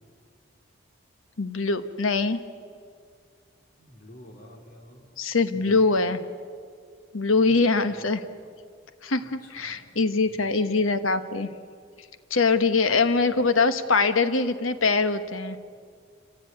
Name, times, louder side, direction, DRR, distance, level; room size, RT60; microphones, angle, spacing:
voice 1, 1.4-2.4 5.2-6.2 7.1-8.2 9.0-11.5 12.3-15.6, left 4 dB, 85° left, 10 dB, 1.3 m, -23 dB
voice 2, 3.8-5.1 5.5-6.0 7.3-7.5 7.9-8.1 9.2-9.9 10.2-10.6 12.9-13.6, left 1 dB, 45° left, 1 dB, 3.8 m, -49 dB
28.0 x 15.5 x 9.4 m, 2.1 s
head